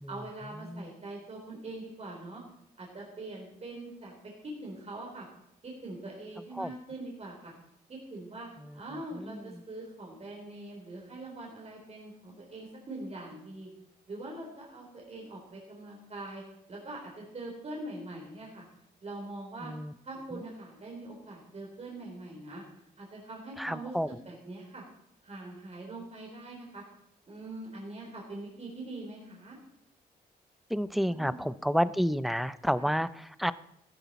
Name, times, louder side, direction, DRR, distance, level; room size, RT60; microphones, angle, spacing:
voice 1, 0.1-2.4 2.8-4.1 4.4-5.3 5.6-7.5 7.9-8.5 8.7-13.7 14.1-16.4 16.7-18.6 19.0-19.7 20.0-22.6 23.0-23.9 24.3-24.8 25.2-26.8 27.3-29.6 30.9-31.4 32.8-32.9, right 2 dB, 40° right, -1 dB, 3.6 m, -43 dB
voice 2, 9.1-9.6 19.6-19.9 20.3-20.4 23.6-24.1 30.7-33.5, equal, ahead, 16 dB, 0.5 m, -30 dB
14.0 x 13.0 x 4.1 m, 0.79 s
cardioid pair, 90°, 17 cm